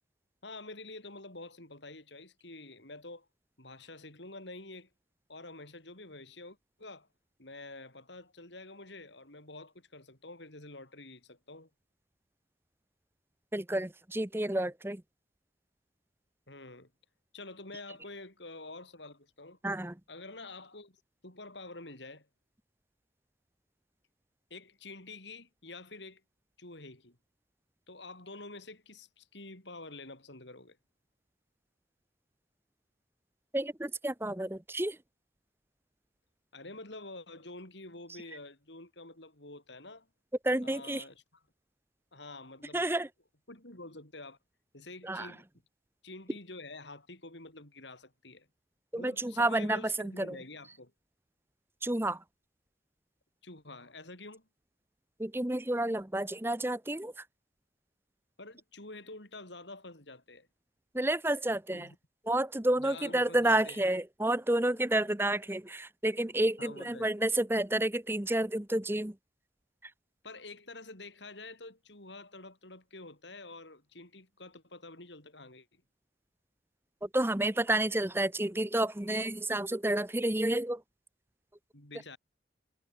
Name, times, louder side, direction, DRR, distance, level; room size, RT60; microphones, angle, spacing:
voice 1, 0.4-3.3 3.6-4.9 5.3-7.1 7.4-11.7 16.5-16.9 17.3-19.6 20.1-21.0 21.2-22.3 24.5-26.2 26.6-27.2 27.9-30.8 36.5-40.1 40.6-41.1 42.1-42.9 43.5-44.4 44.7-45.4 46.0-48.5 49.0-50.9 53.4-54.5 58.4-60.5 61.7-62.0 62.8-63.8 66.6-67.1 70.2-75.8 81.7-82.2, left 2 dB, 75° left, 6.1 m, -48 dB
voice 2, 13.5-15.0 19.6-20.0 33.5-35.0 40.4-41.0 42.7-43.1 45.0-45.3 48.9-50.4 51.8-52.2 55.2-57.3 60.9-61.9 62.2-69.2 69.8-69.9 77.0-80.8, right 1 dB, 10° right, 0.8 m, -30 dB
head